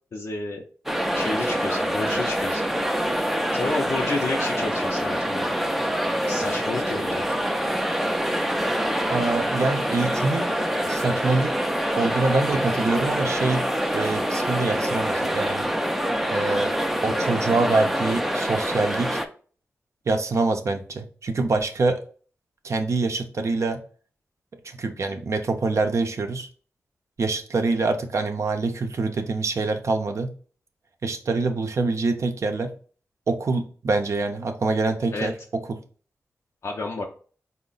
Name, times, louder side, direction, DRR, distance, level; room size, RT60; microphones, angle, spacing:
voice 1, 0.1-0.6 1.1-2.6 3.5-5.6 6.3-7.2 35.1-35.3 36.6-37.0, left 3 dB, 60° left, 0 dB, 0.5 m, -30 dB
sound 1, 0.9-19.3, equal, 5° right, 0.4 m, -25 dB
voice 2, 9.1-10.5 10.9-11.5 12.0-13.6 13.9-15.7 16.3-16.7 17.0-19.2 20.1-22.0 22.6-23.8 24.6-26.5 27.2-30.3 31.0-32.7 33.3-35.3, right 3 dB, 65° right, 6 dB, 0.5 m, -25 dB
3.8 x 2.1 x 3.9 m, 0.42 s
cardioid pair, 55°, 6 cm